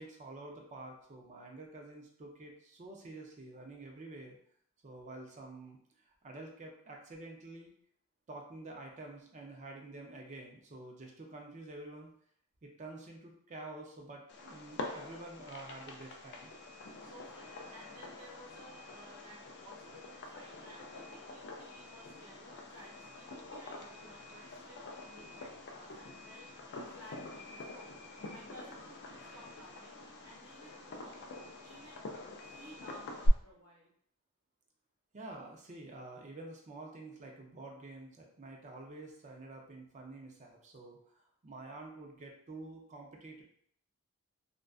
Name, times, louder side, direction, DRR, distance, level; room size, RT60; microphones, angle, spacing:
voice 1, 0.0-4.4 4.8-5.8 6.2-7.7 8.3-12.1 12.6-16.5 35.1-43.4, right 2 dB, 30° right, 1 dB, 0.4 m, -48 dB
Fireworks, 14.3-33.3, left 1 dB, 50° left, 0.4 m, -45 dB
voice 2, 17.0-26.5 26.8-27.9 28.3-31.2 31.6-32.0 32.4-33.9, equal, 70° right, -3 dB, 0.9 m, -56 dB
2.5 x 2.2 x 2.3 m, 0.65 s
head